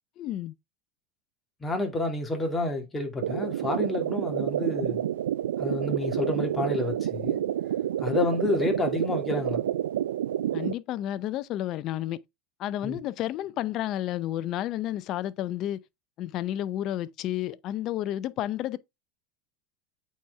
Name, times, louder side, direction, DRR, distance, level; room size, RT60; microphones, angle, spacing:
voice 1, 0.2-0.5 10.5-12.2 12.6-15.8 16.2-18.8, left 12 dB, 50° left, 0.6 m, -31 dB
voice 2, 1.6-5.1 5.6-7.4 8.0-9.6 12.8-13.0, left 2 dB, 15° left, 2.5 m, -29 dB
sound 1, 3.2-10.7, right 11 dB, 90° right, 0.4 m, -29 dB
8.4 x 4.3 x 3.3 m
supercardioid pair, 110°, 0 cm